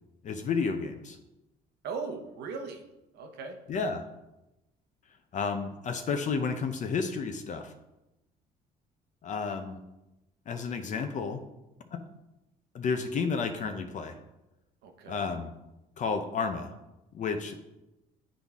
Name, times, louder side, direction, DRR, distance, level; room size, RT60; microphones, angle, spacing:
voice 1, 0.2-1.2 3.7-4.1 5.3-7.7 9.2-9.8 10.5-11.4 11.9-12.0 12.7-14.1 15.1-15.5 16.0-16.7 17.1-17.5, left 5 dB, 45° left, 6 dB, 0.6 m, -31 dB
voice 2, 1.8-2.8 3.1-3.6 14.8-15.3, right 4 dB, 75° right, 5 dB, 1.0 m, -38 dB
10.0 x 4.0 x 3.6 m, 0.96 s
cardioid pair, 110°, 17 cm